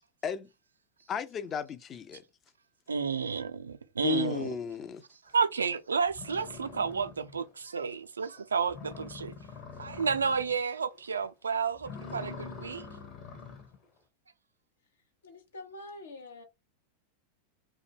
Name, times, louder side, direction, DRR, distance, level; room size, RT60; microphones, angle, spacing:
voice 1, 1.1-2.2 4.0-5.0, left 6 dB, 30° left, 0.4 m, -34 dB
voice 2, 2.9-4.5 5.3-9.3 9.8-12.9, right 5 dB, 90° right, 0.3 m, -31 dB
sound 1, 5.6-5.7 6.1-7.5 7.9-8.0 8.4-8.5 8.7-10.6 10.9-11.3 11.7-13.8, left 5 dB, 45° left, 1.1 m, -45 dB
voice 3, 15.2-16.4, left 2 dB, 80° left, 0.7 m, -45 dB
2.2 x 2.1 x 3.2 m
hypercardioid pair, 95°, 0 cm